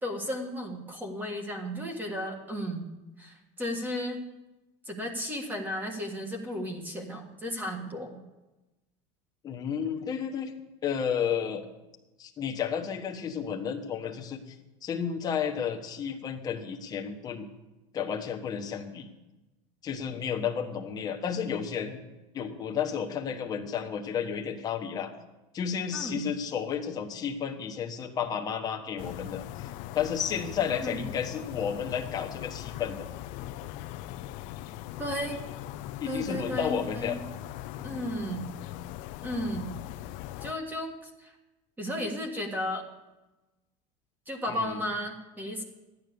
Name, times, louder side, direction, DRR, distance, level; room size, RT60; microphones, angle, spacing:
voice 1, 0.0-2.8 3.2-4.2 4.8-8.2 25.9-26.3 30.7-31.0 35.0-35.4 36.1-37.2 37.8-38.4 39.2-39.7 40.4-41.3 41.8-42.8 44.3-45.6, equal, 10° right, 3 dB, 1.7 m, -34 dB
voice 2, 9.4-10.5 10.8-11.6 12.2-14.5 14.8-17.5 17.9-19.1 19.8-22.0 22.3-25.1 25.5-29.7 29.9-33.0 36.0-37.2 44.5-44.8, left 7 dB, 25° left, 3 dB, 1.3 m, -32 dB
sound 1, 29.0-40.5, left 13 dB, 55° left, 0.5 m, -40 dB
13.5 x 9.6 x 6.9 m, 1.0 s
cardioid pair, 165°, 16 cm